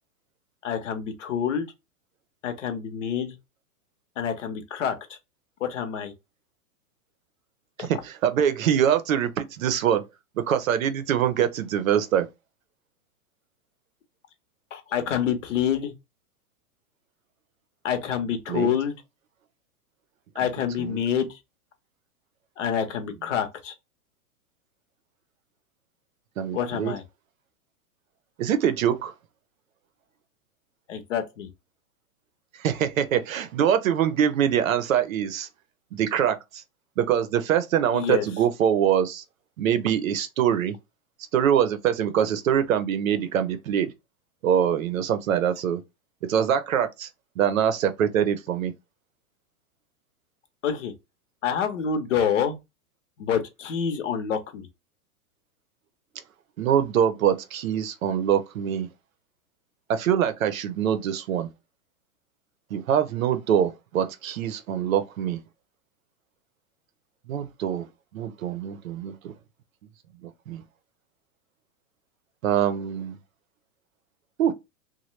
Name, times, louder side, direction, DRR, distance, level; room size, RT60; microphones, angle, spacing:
voice 1, 0.6-1.7 2.4-3.4 4.2-5.2 5.6-6.1 7.8-7.9 14.7-15.9 17.8-19.0 20.3-21.4 22.6-23.7 26.5-27.0 30.9-31.5 37.9-38.3 50.6-50.9 51.4-52.6 53.2-54.7, left 8 dB, 55° left, 0.9 m, -27 dB
voice 2, 7.8-10.0 10.5-12.3 18.5-18.7 20.8-21.0 26.4-26.9 28.4-29.1 32.6-35.5 35.9-36.6 37.0-39.2 39.6-40.7 41.3-43.9 44.4-45.8 46.3-47.1 47.4-48.7 56.6-58.9 59.9-61.5 62.7-65.4 67.3-67.9 68.1-69.3 70.2-70.6 72.4-73.2 74.4-74.5, right 9 dB, 65° right, 0.7 m, -24 dB
3.1 x 2.2 x 3.1 m
supercardioid pair, 175°, 44 cm